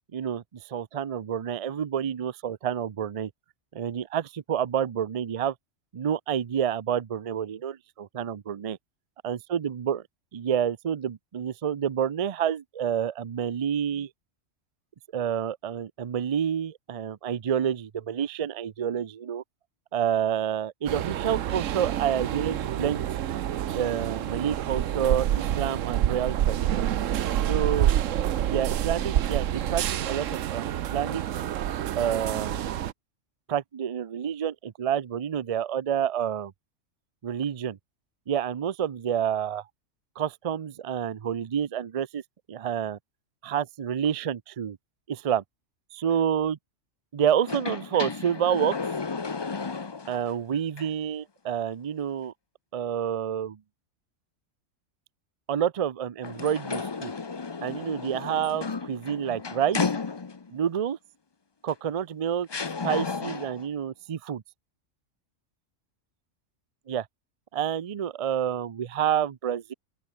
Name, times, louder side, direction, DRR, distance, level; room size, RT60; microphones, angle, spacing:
voice 1, 0.1-3.3 3.7-5.5 5.9-8.8 9.2-10.0 10.3-14.1 15.1-19.4 19.9-23.1 23.7-25.3 25.5-26.9 27.5-27.9 28.4-31.2 32.0-32.7 33.5-36.5 37.2-37.8 38.3-39.6 40.2-42.2 42.5-43.0 43.4-44.8 45.1-45.4 45.9-46.6 47.1-48.7 50.1-52.3 52.7-53.6 55.5-57.1 57.6-59.8 60.5-61.0 61.6-62.5 62.8-64.4 66.9-67.0 67.5-69.7, right 9 dB, 45° right, 0.4 m, -28 dB
sound 1, 20.9-32.9, right 11 dB, 80° right, 1.1 m, -28 dB
sound 2, 47.4-50.3 50.8-50.9 56.2-60.6 61.7-61.8 62.5-63.7, left 4 dB, 25° left, 0.6 m, -33 dB
open air
omnidirectional pair, 1.3 m